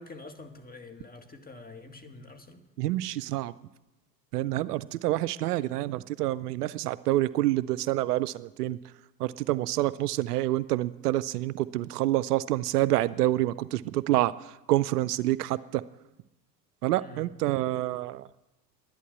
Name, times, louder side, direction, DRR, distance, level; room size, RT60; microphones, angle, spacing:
voice 1, 0.0-2.6 17.0-17.3, left 2 dB, 20° left, 6 dB, 2.1 m, -46 dB
voice 2, 2.8-3.5 4.3-8.8 9.2-15.8 16.8-18.3, right 16 dB, 70° right, 17 dB, 0.6 m, -27 dB
11.0 x 11.0 x 8.5 m, 1.0 s
figure-of-eight pair, 65°, 49 cm